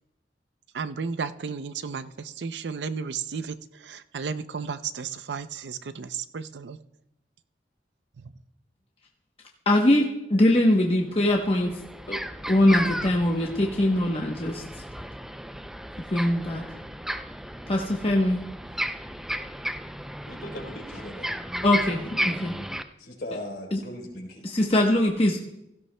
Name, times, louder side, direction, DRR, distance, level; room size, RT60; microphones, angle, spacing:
voice 1, 0.7-6.8, right 5 dB, 85° right, 12 dB, 0.5 m, -33 dB
voice 2, 9.7-11.7 12.1-14.8 16.1-16.6 17.7-18.4 21.6-22.6 23.7-23.8 24.4-25.4, left 1 dB, 35° left, 0 dB, 0.9 m, -22 dB
sound 1, 10.8-10.9 11.2-22.8, equal, 5° right, 0.4 m, -34 dB
voice 3, 20.3-21.3 23.0-24.5, left 1 dB, 60° left, 0 dB, 3.6 m, -38 dB
16.5 x 15.5 x 2.2 m, 0.87 s
head